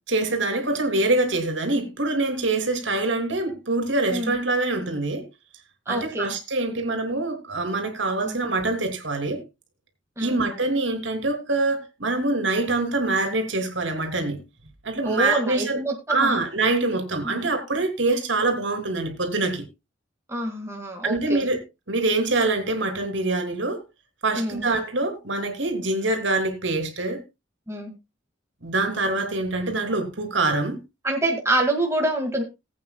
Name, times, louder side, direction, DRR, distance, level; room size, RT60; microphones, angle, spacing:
voice 1, 0.1-5.3 5.9-9.4 10.2-14.4 14.8-15.8 16.1-19.7 21.0-21.6 21.9-23.8 24.2-27.2 28.6-30.8, right 2 dB, 75° right, 2.9 m, -25 dB
voice 2, 5.9-6.3 8.2-8.4 10.2-10.4 15.0-16.4 17.2-17.4 20.3-21.5 24.4-24.7 27.7-27.9 31.0-32.4, right 1 dB, 15° right, 1.9 m, -26 dB
20.0 x 8.5 x 2.3 m
head